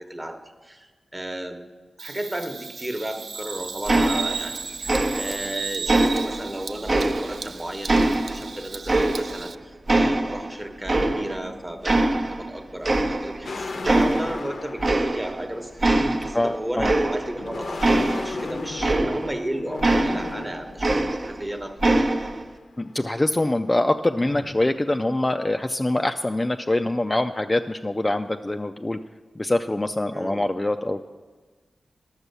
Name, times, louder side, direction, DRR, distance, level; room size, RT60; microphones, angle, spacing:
voice 1, 0.0-1.7 2.0-22.1 30.1-30.4, right 1 dB, 15° right, 5 dB, 1.1 m, -34 dB
Bird vocalization bird call bird song, 2.0-9.5, right 5 dB, 75° right, 0.3 m, -35 dB
sound 1, 3.9-4.6 4.9-5.5 5.9-7.5 7.9-9.5 9.9-11.5 11.8-12.5 12.8-13.5 13.8-14.4 14.8-15.5 15.8-19.4 19.8-21.5 21.8-22.4, right 2 dB, 45° right, 0.8 m, -23 dB
sound 2, 13.4-16.1 16.9-21.0 21.8-22.0 22.4-23.6 24.1-24.7, left 3 dB, 65° left, 0.6 m, -36 dB
voice 2, 16.1-16.9 22.8-29.0 29.4-31.0, left 1 dB, 20° left, 6 dB, 0.4 m, -24 dB
11.0 x 7.1 x 6.8 m, 1.4 s
wide cardioid pair, 90°, 0 cm